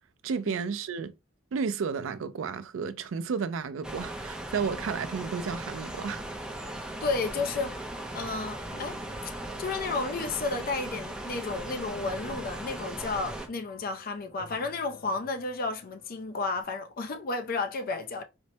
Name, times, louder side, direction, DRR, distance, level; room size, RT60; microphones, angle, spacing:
voice 1, 0.2-1.1 1.5-6.2, right 5 dB, 80° right, 0.4 m, -32 dB
sound 1, 3.8-13.5, right 1 dB, 5° right, 0.5 m, -38 dB
sound 2, 6.5-16.6, left 2 dB, 85° left, 1.6 m, -53 dB
voice 2, 7.0-7.8 8.1-9.3 9.6-18.2, left 3 dB, 45° left, 0.5 m, -32 dB
4.3 x 2.1 x 2.7 m
head